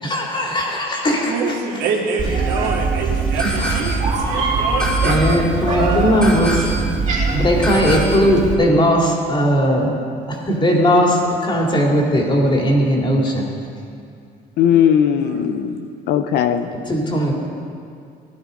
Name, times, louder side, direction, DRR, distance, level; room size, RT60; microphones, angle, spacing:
voice 1, 0.0-1.6 3.4-3.8 5.0-6.7 7.3-9.9 10.3-13.4 16.9-17.3, equal, 30° left, -1 dB, 3.0 m, -18 dB
voice 2, 1.2-5.4 15.2-15.5, right 4 dB, 90° right, -1 dB, 2.5 m, -26 dB
Meow, 2.2-8.5, right 3 dB, 45° right, 3.6 m, -22 dB
sound 1, 3.4-4.1 4.8-5.5 6.2-6.9 7.6-8.4, right 1 dB, 5° left, 2.7 m, -27 dB
voice 3, 14.6-16.7, left 9 dB, 80° left, 9 dB, 0.8 m, -18 dB
16.0 x 11.5 x 5.3 m, 2.3 s
cardioid pair, 110°, 17 cm